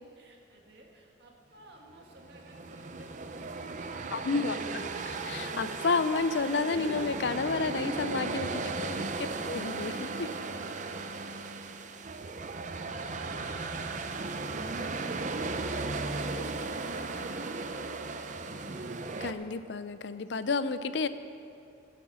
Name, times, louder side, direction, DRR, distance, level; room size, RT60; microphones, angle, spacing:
voice 1, 0.2-4.6 10.0-11.7 12.0-18.8, right 1 dB, 60° right, 0 dB, 2.0 m, -55 dB
sound 1, 2.0-19.3, right 3 dB, 40° right, 0.6 m, -36 dB
voice 2, 4.1-4.5 5.1-10.3 16.3-16.5 19.2-21.1, left 4 dB, 65° left, 12 dB, 0.5 m, -31 dB
17.0 x 7.7 x 6.3 m, 2.6 s
head